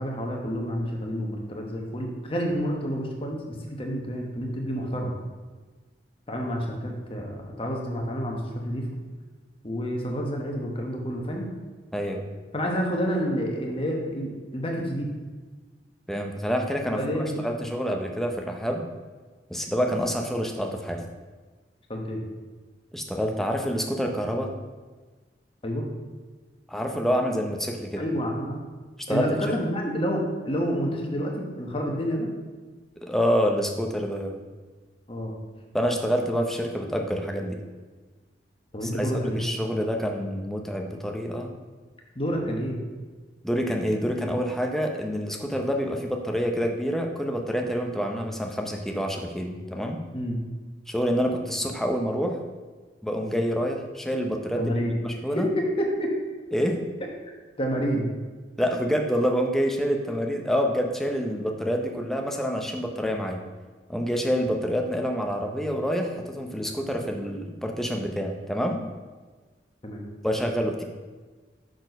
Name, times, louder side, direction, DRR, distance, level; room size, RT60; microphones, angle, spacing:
voice 1, 0.0-5.1 6.3-8.9 9.6-11.5 12.5-15.1 16.9-17.5 21.9-22.2 25.6-25.9 28.0-28.6 29.1-32.3 35.1-35.4 38.7-39.4 42.1-42.8 50.1-50.4 54.5-55.0 55.4-56.2 57.6-58.1 69.8-70.0, equal, 30° left, 0 dB, 1.0 m, -29 dB
voice 2, 11.9-12.2 16.1-17.2 17.4-18.8 19.5-21.0 22.9-24.5 26.7-28.0 29.1-29.6 33.0-34.4 35.7-37.6 38.8-41.5 43.4-50.0 50.9-52.4 53.0-54.8 55.0-55.5 56.5-56.8 58.6-63.4 63.9-68.8 70.2-70.8, equal, ahead, 2 dB, 0.6 m, -27 dB
6.2 x 4.3 x 5.2 m, 1.3 s
head